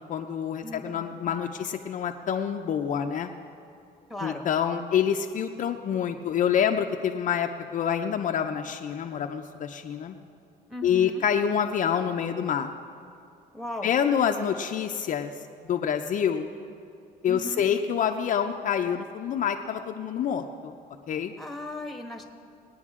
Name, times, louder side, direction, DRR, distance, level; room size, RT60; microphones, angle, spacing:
voice 1, 0.1-3.3 4.2-10.1 10.8-12.7 13.8-15.3 15.6-16.5 17.2-20.7 21.1-21.3, left 8 dB, 50° left, 4 dB, 0.6 m, -27 dB
voice 2, 0.6-1.3 4.1-4.4 10.7-11.2 13.5-13.9 17.3-17.7 21.4-22.2, left 1 dB, ahead, 3 dB, 1.3 m, -37 dB
21.0 x 9.4 x 3.7 m, 2.5 s
cardioid pair, 110°, 17 cm